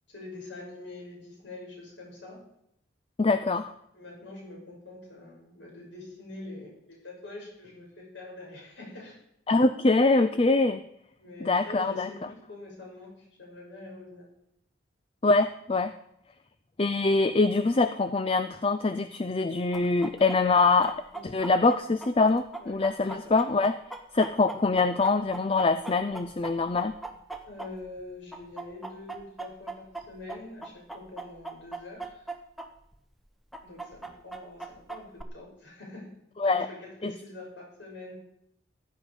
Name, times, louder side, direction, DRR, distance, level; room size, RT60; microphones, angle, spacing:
voice 1, 0.1-2.4 3.9-9.2 11.2-14.2 21.1-21.3 22.6-22.7 27.5-32.3 33.6-36.2 36.4-38.2, left 2 dB, 65° left, -2 dB, 6.2 m, -45 dB
voice 2, 3.2-3.7 9.5-10.8 11.4-12.1 15.2-15.9 16.8-21.0 21.2-23.7 24.1-26.9 36.4-36.7 37.0-37.1, left 3 dB, 30° left, 11 dB, 0.4 m, -24 dB
Chicken rooster, 19.7-28.0 28.3-32.7 32.9-33.0 33.5-35.2, right 3 dB, ahead, 0.9 m, -39 dB
15.0 x 10.0 x 4.9 m, 0.77 s
head